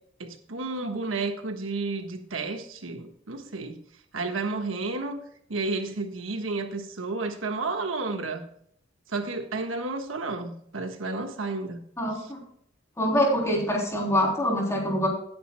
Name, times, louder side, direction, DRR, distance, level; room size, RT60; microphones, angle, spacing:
voice 1, 0.2-3.8 4.1-5.2 5.5-8.4 9.1-11.8, right 3 dB, 85° right, 6 dB, 1.4 m, -31 dB
voice 2, 12.0-12.4 13.0-15.1, equal, 15° left, -1 dB, 3.3 m, -25 dB
18.0 x 9.4 x 2.2 m, 0.68 s
head